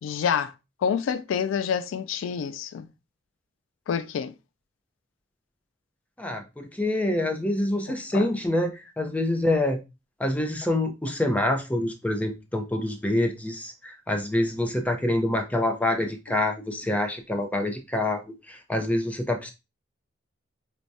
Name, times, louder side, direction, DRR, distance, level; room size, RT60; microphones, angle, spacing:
voice 1, 0.0-0.5 0.8-2.9 3.9-4.3 8.1-8.4, left 7 dB, 80° left, 0.3 m, -27 dB
voice 2, 6.2-9.8 10.2-18.2 18.5-19.5, left 1 dB, 10° left, 0.5 m, -26 dB
4.6 x 2.2 x 2.6 m
head